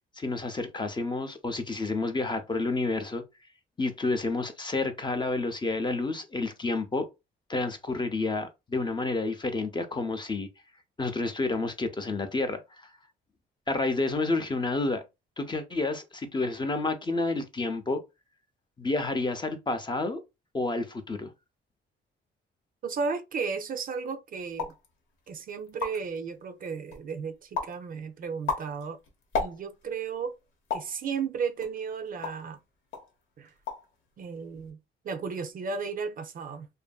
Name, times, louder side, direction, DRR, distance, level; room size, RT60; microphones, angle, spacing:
voice 1, 0.2-3.2 3.8-7.1 7.5-10.5 11.0-12.6 13.7-15.0 15.4-18.0 18.8-20.2 20.5-21.3, left 3 dB, 25° left, 0.6 m, -29 dB
voice 2, 22.8-24.7 25.3-29.0 29.4-30.3 30.7-32.6 33.4-33.5 34.2-34.8 35.0-36.7, right 5 dB, 45° right, 0.4 m, -34 dB
sound 1, 24.5-24.9 25.4-25.5 25.6-26.2 26.7-27.1 27.5-27.8 28.2-29.9 30.7-31.0 31.6-32.5 32.9-33.1 33.4-33.9 34.2-34.7, left 5 dB, 75° left, 0.8 m, -34 dB
2.6 x 2.5 x 2.3 m
cardioid pair, 90°, 20 cm